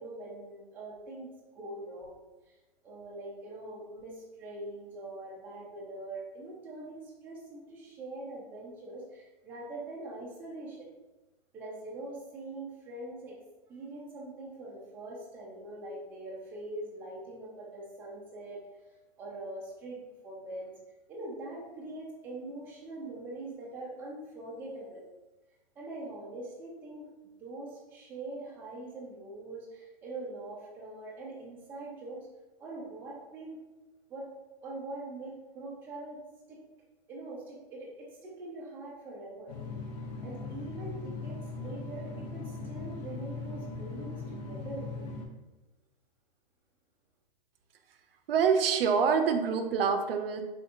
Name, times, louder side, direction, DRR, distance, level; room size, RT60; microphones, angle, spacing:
voice 1, 0.0-2.6 2.8-10.9 11.5-13.4 13.7-18.6 19.2-20.7 21.1-25.0 25.8-32.3 32.6-33.6 34.1-34.3 34.6-36.2 36.5-36.6 37.1-39.5 40.2-44.9, right 2 dB, 5° right, -6 dB, 0.4 m, -43 dB
sound 1, 39.5-45.3, left 3 dB, 45° left, 0.7 m, -39 dB
voice 2, 48.3-50.4, right 6 dB, 75° right, 6 dB, 0.5 m, -26 dB
3.5 x 2.7 x 2.4 m, 1.1 s
hypercardioid pair, 140°, 29 cm